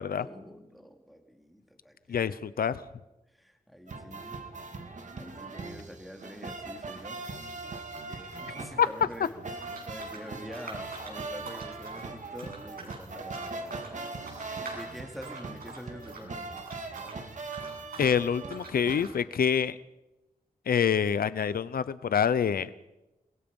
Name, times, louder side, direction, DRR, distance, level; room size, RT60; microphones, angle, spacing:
voice 1, 0.0-2.7 3.3-4.4 5.1-7.2 8.1-9.6 9.9-14.3 14.7-16.5, equal, ahead, 4 dB, 2.7 m, -46 dB
voice 2, 2.1-2.8 8.8-8.9 18.0-19.8 20.7-22.7, left 7 dB, 90° left, 15 dB, 0.7 m, -26 dB
sound 1, 3.9-19.1, right 3 dB, 55° right, 2.3 m, -40 dB
sound 2, 5.4-5.6 5.8-8.4 8.7-17.2 17.5-18.2 18.5-19.2, right 3 dB, 85° right, 7.7 m, -47 dB
28.5 x 22.0 x 5.5 m, 0.98 s
wide cardioid pair, 175°, 15 cm